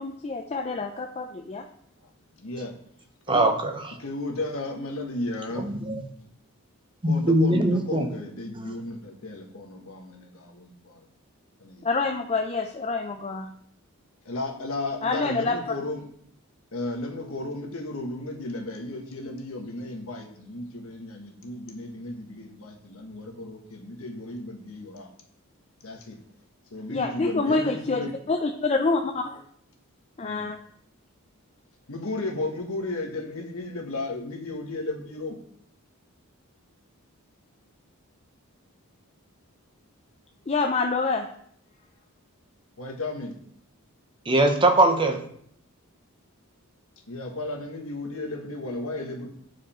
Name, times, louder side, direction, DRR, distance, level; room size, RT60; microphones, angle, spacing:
voice 1, 0.0-1.6 11.8-13.5 15.0-15.6 26.9-28.0 28.3-29.4 30.2-30.6 40.5-41.3, left 3 dB, 30° left, 4 dB, 0.4 m, -26 dB
voice 2, 2.4-2.8 3.3-3.5 4.0-5.8 7.0-11.1 11.6-11.9 14.2-16.1 16.7-25.1 25.8-26.2 26.7-28.1 30.2-30.5 31.9-35.4 42.8-43.4 47.1-49.3, left 2 dB, 65° left, 2 dB, 1.4 m, -34 dB
voice 3, 3.3-3.9 5.6-6.0 7.0-8.1 8.6-8.8 44.3-45.2, right 1 dB, 20° right, 5 dB, 0.7 m, -21 dB
9.2 x 4.9 x 4.3 m, 0.66 s
head